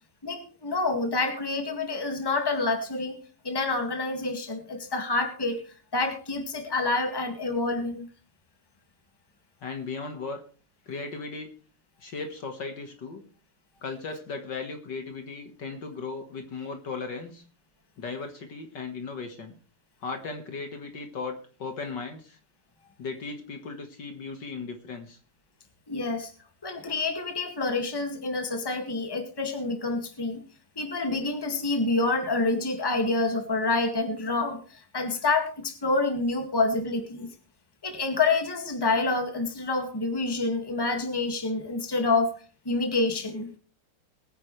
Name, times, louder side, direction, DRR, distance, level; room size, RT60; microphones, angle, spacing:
voice 1, 0.2-3.2 3.4-5.6 5.9-8.1 25.9-26.3 26.6-30.4 30.8-37.3 37.8-42.3 42.7-43.5, left 3 dB, 10° left, 5 dB, 1.9 m, -27 dB
voice 2, 9.6-10.4 10.9-11.5 12.0-13.2 13.8-17.4 18.0-19.6 20.0-22.4 23.0-25.2, left 4 dB, 55° left, 6 dB, 2.1 m, -36 dB
22.0 x 9.5 x 3.3 m, 0.38 s
omnidirectional pair, 2.4 m